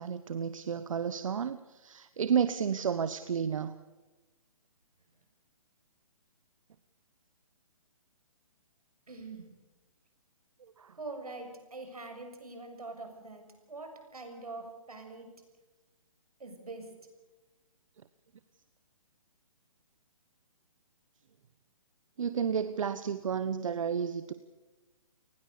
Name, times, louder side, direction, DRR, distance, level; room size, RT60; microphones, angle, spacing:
voice 1, 0.0-3.8 10.8-10.9 22.2-24.3, right 7 dB, 60° right, 12 dB, 1.1 m, -31 dB
voice 2, 9.1-9.5 11.0-15.3 16.4-16.9, right 3 dB, 85° right, 5 dB, 6.8 m, -44 dB
30.0 x 19.5 x 6.8 m, 1.1 s
hypercardioid pair, 140°, 19 cm